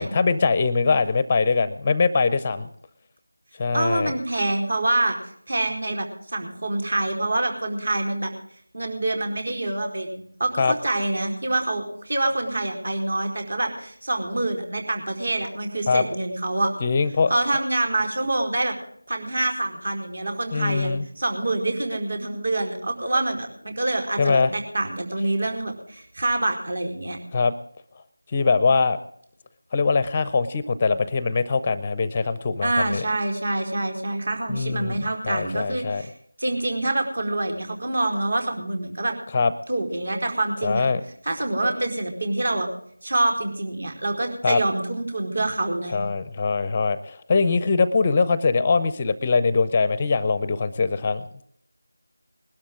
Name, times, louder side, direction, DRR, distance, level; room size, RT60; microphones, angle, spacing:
voice 1, 0.0-2.7 3.6-4.1 10.6-10.7 15.9-16.0 16.8-17.3 20.5-21.0 24.2-24.5 27.3-27.5 28.3-29.0 29.7-33.0 34.5-35.0 35.2-36.0 39.3-39.5 40.6-41.0 44.4-44.6 45.9-51.4, left 4 dB, 20° left, 14 dB, 0.5 m, -22 dB
voice 2, 3.7-5.1 5.5-6.1 6.3-8.3 8.7-16.7 17.3-18.7 19.1-27.2 32.6-36.1 36.4-39.1 39.7-40.9 41.2-42.7 43.0-46.0, right 2 dB, 60° right, 4 dB, 4.5 m, -26 dB
20.5 x 12.5 x 3.7 m, 0.67 s
figure-of-eight pair, 170°, 0 cm